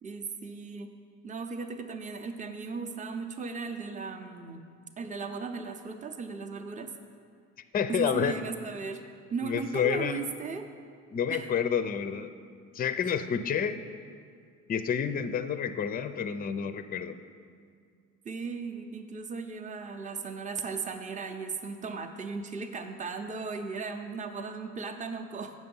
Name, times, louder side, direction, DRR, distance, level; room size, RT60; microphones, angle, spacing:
voice 1, 0.0-0.9 1.2-4.6 5.0-6.9 7.9-9.0 9.3-10.7 11.3-11.5 18.2-25.5, right 4 dB, 20° right, 6 dB, 0.7 m, -36 dB
voice 2, 7.7-8.4 9.4-10.2 11.1-12.3 12.7-13.8 14.7-17.2, left 7 dB, 25° left, 11 dB, 0.4 m, -29 dB
7.7 x 6.2 x 5.4 m, 2.2 s
supercardioid pair, 85°, 36 cm